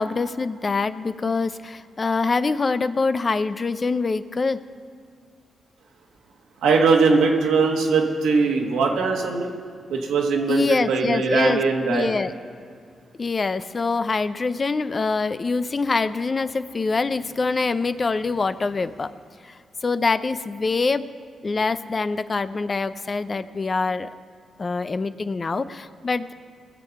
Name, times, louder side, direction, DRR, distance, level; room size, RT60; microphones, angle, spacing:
voice 1, 0.0-4.6 10.5-11.6 11.9-12.3 13.2-19.1 19.4-21.1 21.4-24.1 24.6-26.3, left 4 dB, 45° left, 13 dB, 0.6 m, -24 dB
voice 2, 6.6-9.5 9.9-12.1, right 4 dB, 85° right, 1 dB, 1.5 m, -20 dB
20.0 x 7.4 x 5.8 m, 2.2 s
supercardioid pair, 50°, 0 cm